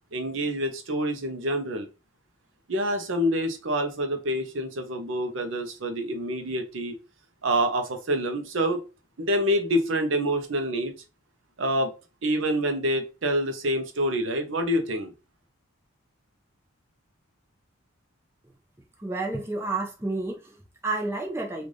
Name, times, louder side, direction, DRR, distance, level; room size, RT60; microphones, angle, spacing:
voice 1, 0.1-1.9 2.7-7.0 7.4-8.8 9.2-10.9 11.6-11.9 12.2-15.1, equal, 70° right, 0.6 m, -27 dB
voice 2, 19.0-21.7, right 2 dB, 10° right, 0.6 m, -30 dB
3.2 x 2.5 x 3.8 m
head